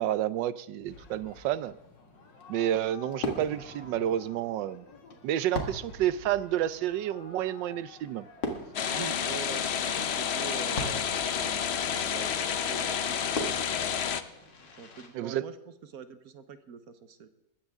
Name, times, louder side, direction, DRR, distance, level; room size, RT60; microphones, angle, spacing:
voice 1, 0.0-1.8 2.5-4.9 5.2-8.3 15.1-15.5, right 11 dB, 80° right, 16 dB, 1.3 m, -30 dB
Fireworks, 0.9-15.1, left 2 dB, 75° left, 2.6 m, -42 dB
sound 1, 8.7-14.2, left 7 dB, 55° left, 0.7 m, -30 dB
voice 2, 8.9-14.0 14.8-15.5 15.9-17.3, right 6 dB, 55° right, 10 dB, 1.3 m, -45 dB
20.5 x 14.5 x 3.6 m, 0.95 s
omnidirectional pair, 2.0 m